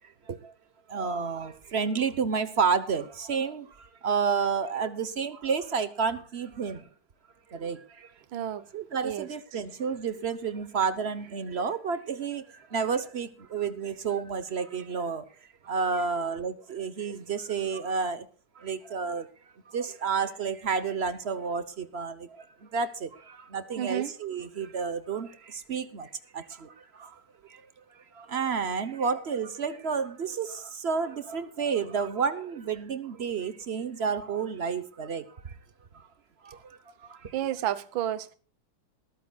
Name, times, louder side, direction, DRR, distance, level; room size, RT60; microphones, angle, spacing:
voice 1, 0.0-0.5 0.9-6.9 7.5-8.1 8.7-15.3 15.6-18.3 18.6-19.3 19.7-27.6 28.1-35.6 35.9-36.1 36.4-37.3, right 5 dB, 45° right, 0.9 m, -31 dB
voice 2, 8.3-8.7 9.0-9.3 23.8-24.1 37.3-38.3, right 11 dB, 70° right, 1.7 m, -31 dB
20.5 x 14.0 x 2.4 m
omnidirectional pair, 2.4 m